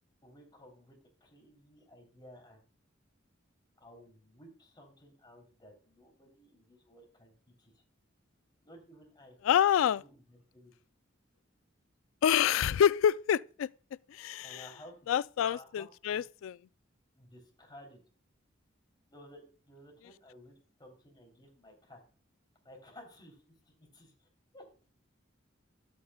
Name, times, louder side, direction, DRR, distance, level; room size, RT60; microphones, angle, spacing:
voice 1, 0.2-2.6 3.8-7.7 8.6-9.4 10.0-10.7 14.4-15.1 15.4-16.2 17.1-18.0 19.1-22.0 22.6-24.3 24.5-24.7, equal, 20° left, 3.1 m, -55 dB
voice 2, 9.4-10.0 12.2-13.7 14.1-14.6 15.1-16.6, left 9 dB, 85° left, 0.3 m, -27 dB
12.5 x 8.3 x 2.3 m
head